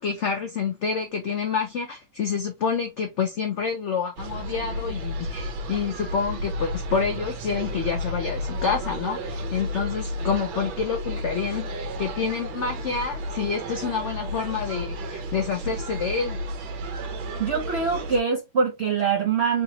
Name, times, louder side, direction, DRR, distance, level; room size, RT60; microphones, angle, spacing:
voice 1, 0.0-16.4, left 6 dB, 65° left, 0.7 m, -28 dB
sound 1, 4.2-18.2, equal, 85° right, 1.6 m, -32 dB
voice 2, 17.4-19.6, right 5 dB, 60° right, 0.6 m, -24 dB
4.0 x 2.9 x 2.8 m
omnidirectional pair, 2.1 m